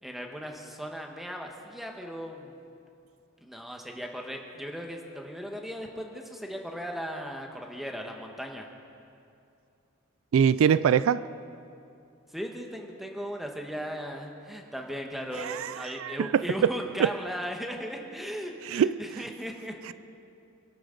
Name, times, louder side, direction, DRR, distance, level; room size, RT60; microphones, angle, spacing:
voice 1, 0.0-2.6 3.4-8.7 12.3-19.8, equal, ahead, 2 dB, 1.2 m, -37 dB
voice 2, 10.3-11.2 15.4-16.7 17.0-17.1 18.6-19.0, right 8 dB, 75° right, 16 dB, 0.3 m, -23 dB
24.0 x 12.0 x 3.9 m, 2.6 s
head